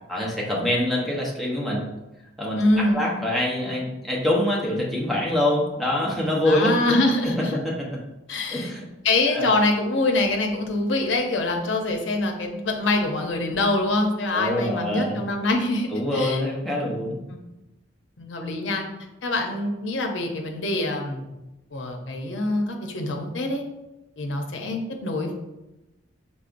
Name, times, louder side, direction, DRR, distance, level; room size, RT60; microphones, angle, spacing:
voice 1, 0.1-1.8 2.4-2.6 2.9-6.9 7.2-7.7 8.5-8.9 9.3-9.5 14.3-15.2 15.9-17.2, left 1 dB, ahead, -4 dB, 0.9 m, -25 dB
voice 2, 2.5-3.0 6.5-7.6 8.3-8.7 9.0-16.4 16.8-17.0 17.3-17.4 18.2-18.8 19.2-21.3 21.7-23.6 24.2-25.3, left 2 dB, 75° left, 3 dB, 0.7 m, -24 dB
5.4 x 3.5 x 2.6 m, 0.99 s
head